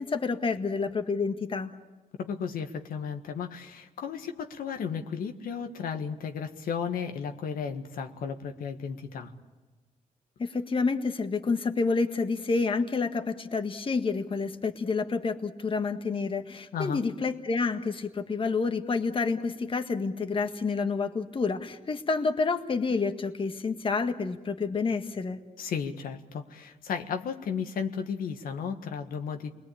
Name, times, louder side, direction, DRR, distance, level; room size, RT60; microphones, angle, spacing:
voice 1, 0.0-1.7 10.4-25.4, left 4 dB, 35° left, 6 dB, 1.6 m, -29 dB
voice 2, 2.2-9.3 16.7-17.0 25.6-29.5, left 6 dB, 85° left, 5 dB, 1.7 m, -34 dB
29.0 x 21.5 x 8.7 m, 1.2 s
cardioid pair, 95°, 15 cm